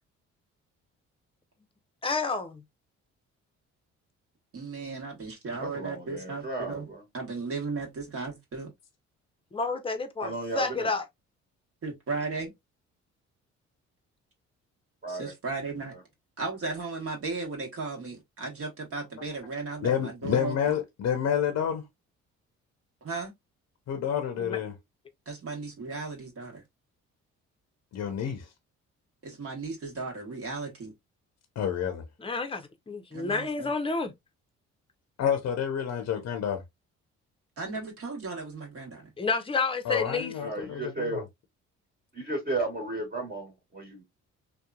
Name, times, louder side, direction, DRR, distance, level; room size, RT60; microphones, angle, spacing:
voice 1, 2.0-2.6 9.5-11.0 24.4-24.6 32.2-34.1 39.2-40.3, left 4 dB, 20° left, 0.6 m, -30 dB
voice 2, 4.5-6.8 7.1-8.7 11.8-12.5 15.1-15.9 16.4-20.7 23.0-23.3 25.3-26.6 29.2-30.9 33.1-33.7 37.6-39.1, right 3 dB, 50° right, 1.2 m, -36 dB
voice 3, 5.6-7.0 10.2-10.9 15.0-15.3 15.9-16.0 40.4-41.2 42.1-44.0, right 2 dB, 30° right, 1.3 m, -34 dB
voice 4, 19.8-21.9 23.9-24.8 27.9-28.5 31.6-32.0 35.2-36.6 39.8-41.2, left 8 dB, 60° left, 0.6 m, -29 dB
2.8 x 2.2 x 2.3 m
cardioid pair, 75°, 29 cm